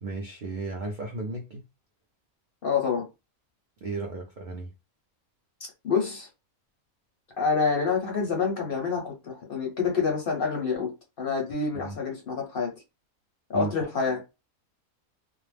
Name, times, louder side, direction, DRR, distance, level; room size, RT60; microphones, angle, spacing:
voice 1, 0.0-1.7 3.8-4.7 11.7-12.0 13.5-13.7, right 3 dB, 60° right, 0.5 m, -34 dB
voice 2, 2.6-3.1 5.8-6.3 7.4-12.7 13.5-14.2, left 5 dB, 50° left, 0.7 m, -27 dB
2.4 x 2.0 x 3.2 m
omnidirectional pair, 1.5 m